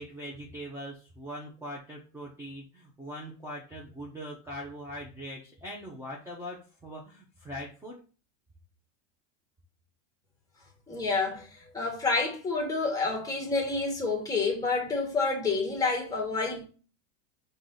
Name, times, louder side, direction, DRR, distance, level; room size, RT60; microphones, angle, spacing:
voice 1, 0.0-8.0, equal, 5° right, 0.9 m, -41 dB
voice 2, 10.9-16.6, left 3 dB, 10° left, 1.5 m, -29 dB
4.7 x 2.7 x 3.9 m
supercardioid pair, 130°, 37 cm